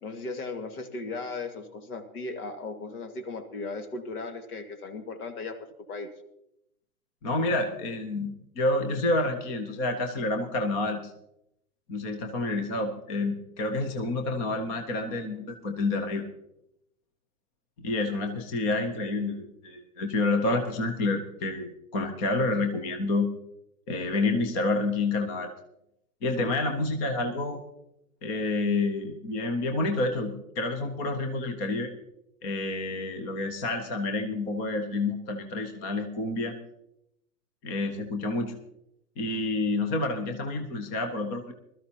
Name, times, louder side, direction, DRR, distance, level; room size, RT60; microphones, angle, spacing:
voice 1, 0.0-6.1, left 3 dB, 65° left, 7 dB, 2.2 m, -37 dB
voice 2, 7.2-11.0 11.9-16.2 17.8-23.3 23.9-25.5 26.2-27.6 28.2-31.9 32.4-36.5 37.6-38.5 39.2-41.5, left 2 dB, 10° left, 6 dB, 0.4 m, -29 dB
20.0 x 13.0 x 2.8 m, 0.82 s
hypercardioid pair, 130°, 47 cm